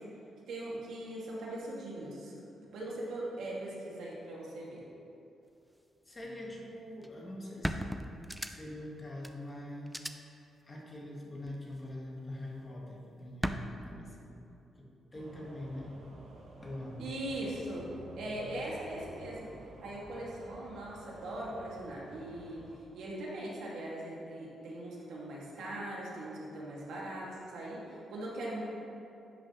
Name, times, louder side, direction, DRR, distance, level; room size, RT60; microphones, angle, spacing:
voice 1, 0.5-4.8 17.0-17.9 18.2-19.5 19.8-22.6 22.9-28.6, right 1 dB, 90° right, -5 dB, 1.8 m, -40 dB
voice 2, 6.0-8.0 8.5-10.4 10.6-14.3 14.8-16.0 16.6-17.0, left 1 dB, 20° left, -3 dB, 1.3 m, -44 dB
sound 1, 7.0-7.1 7.6-8.8 9.2-9.3 9.9-10.1 11.5-11.9 13.4-13.6, equal, 5° right, 0.3 m, -35 dB
sound 2, 15.1-22.8, right 1 dB, 60° right, 0.9 m, -51 dB
10.5 x 6.2 x 3.0 m, 2.8 s
cardioid pair, 145°, 0 cm